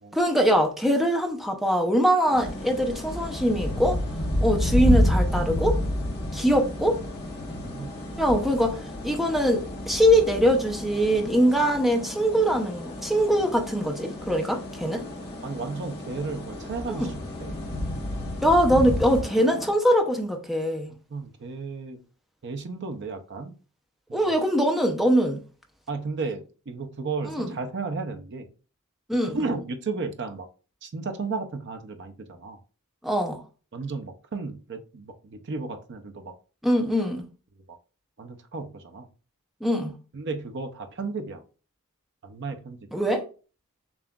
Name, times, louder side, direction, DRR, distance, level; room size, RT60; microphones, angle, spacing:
voice 1, 0.1-4.0 4.4-5.8 6.3-7.0 8.2-15.0 17.0-17.1 18.4-20.9 24.1-25.4 27.3-27.5 29.1-29.4 33.0-33.4 36.6-37.3 39.6-39.9 42.9-43.2, equal, ahead, 0.5 m, -22 dB
sound 1, 2.2-19.7, left 1 dB, 20° left, 1.3 m, -39 dB
sound 2, 2.3-19.2, left 1 dB, 45° left, 0.9 m, -30 dB
voice 2, 7.6-7.9 14.8-15.0 15.4-17.5 20.9-22.0 22.4-23.6 24.1-24.3 25.9-28.5 29.2-30.5 30.8-32.6 33.7-36.4 37.7-37.8 38.2-39.1 40.1-41.4 42.2-43.0, right 4 dB, 50° right, 0.5 m, -34 dB
7.0 x 2.4 x 2.3 m
head